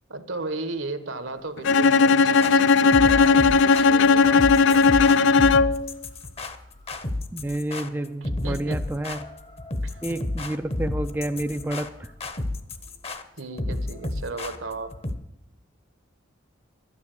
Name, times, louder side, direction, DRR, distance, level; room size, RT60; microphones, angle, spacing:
voice 1, 0.1-5.1 8.2-8.9 9.8-10.0 13.4-14.9, right 3 dB, 75° right, 10 dB, 1.2 m, -35 dB
Bowed string instrument, 1.6-5.9, left 4 dB, 60° left, 0.4 m, -17 dB
sound 1, 2.4-15.2, left 2 dB, 30° left, 0.8 m, -32 dB
voice 2, 7.3-9.2 10.0-12.1, right 1 dB, 10° right, 7 dB, 0.3 m, -29 dB
12.5 x 9.7 x 6.6 m, 0.89 s
head